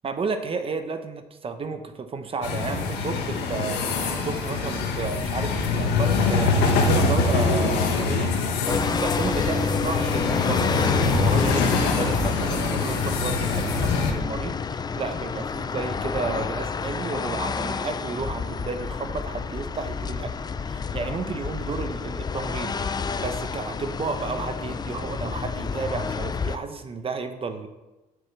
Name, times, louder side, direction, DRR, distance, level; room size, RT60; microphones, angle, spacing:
voice 1, 0.0-8.3 8.6-20.3 20.7-27.7, right 4 dB, 35° right, 8 dB, 1.0 m, -32 dB
sound 1, 2.4-14.1, left 4 dB, 90° left, 1.3 m, -24 dB
sound 2, 8.6-26.6, left 5 dB, 25° left, 0.5 m, -29 dB
7.1 x 6.7 x 7.2 m, 1.1 s
cardioid pair, 110°, 17 cm